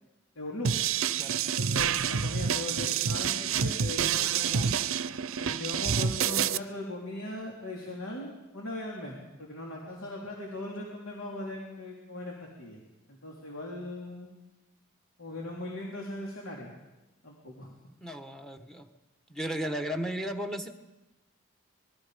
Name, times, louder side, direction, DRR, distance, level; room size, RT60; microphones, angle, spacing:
voice 1, 0.3-0.8 1.4-4.7 5.4-12.8 13.1-14.3 15.2-16.7 17.2-17.7, left 2 dB, 70° left, -3 dB, 3.3 m, -39 dB
sound 1, 0.6-6.6, right 7 dB, 70° right, 0.6 m, -28 dB
voice 2, 18.0-18.9 19.3-20.7, equal, ahead, 6 dB, 1.2 m, -35 dB
26.0 x 20.5 x 5.1 m, 1.0 s
head